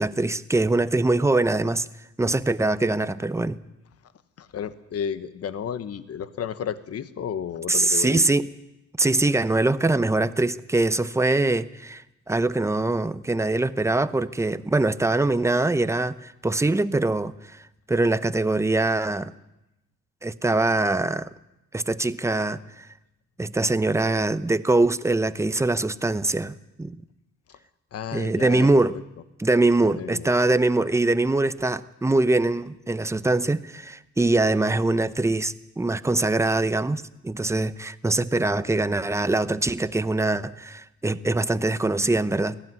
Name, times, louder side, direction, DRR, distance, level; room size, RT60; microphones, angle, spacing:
voice 1, 0.0-1.9 2.2-3.6 7.7-8.5 9.0-17.6 17.9-19.3 20.2-21.3 21.7-22.9 23.4-27.0 28.1-29.0 29.4-42.6, right 2 dB, 10° right, 0.8 m, -23 dB
voice 2, 4.4-8.2 27.5-27.6 27.9-28.7 29.8-30.3, left 8 dB, 50° left, 1.2 m, -32 dB
18.0 x 15.0 x 9.4 m
cardioid pair, 90°, 30 cm